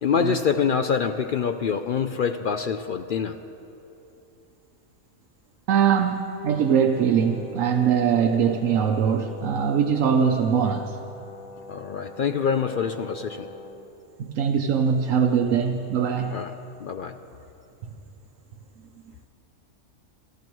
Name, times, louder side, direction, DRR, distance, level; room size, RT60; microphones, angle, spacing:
voice 1, 0.0-3.4 11.7-13.5 16.3-16.5 16.8-17.1, left 6 dB, 65° left, 8 dB, 0.5 m, -25 dB
voice 2, 5.7-11.0 14.2-16.4, right 7 dB, 80° right, 4 dB, 1.1 m, -22 dB
Brass instrument, 6.9-13.9, left 3 dB, 85° left, 1.3 m, -43 dB
26.0 x 14.0 x 3.1 m, 2.8 s
omnidirectional pair, 1.4 m